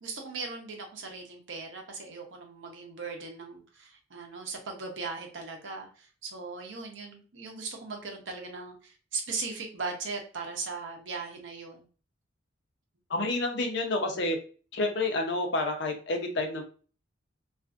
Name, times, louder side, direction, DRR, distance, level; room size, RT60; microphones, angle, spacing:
voice 1, 0.0-11.9, right 4 dB, 75° right, 2 dB, 0.7 m, -38 dB
voice 2, 13.1-14.4 14.7-16.6, left 2 dB, 65° left, 3 dB, 0.6 m, -29 dB
2.5 x 2.4 x 2.4 m, 0.38 s
head